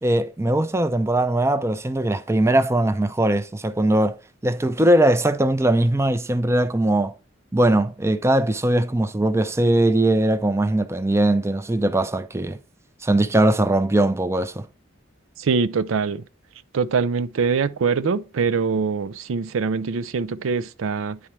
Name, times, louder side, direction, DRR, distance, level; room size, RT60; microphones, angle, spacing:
voice 1, 0.0-4.2 4.4-7.1 7.5-12.6 13.0-14.7, right 1 dB, 15° right, 0.5 m, -20 dB
voice 2, 15.4-16.2 16.7-21.2, right 5 dB, 85° right, 0.4 m, -23 dB
9.6 x 4.4 x 3.3 m
head